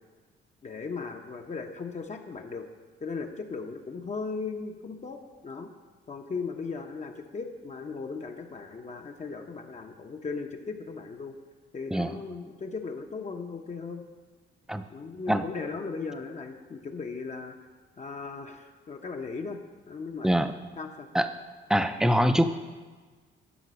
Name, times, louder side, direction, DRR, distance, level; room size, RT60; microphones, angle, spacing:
voice 1, 0.6-2.7 3.0-5.7 6.1-11.4 11.7-14.0 14.9-17.5 18.0-19.6 19.9-20.5 20.8-21.1, left 4 dB, 35° left, 4 dB, 0.9 m, -37 dB
voice 2, 21.7-22.7, equal, 5° right, 9 dB, 0.5 m, -24 dB
11.0 x 3.9 x 6.3 m, 1.4 s
cardioid pair, 90°, 20 cm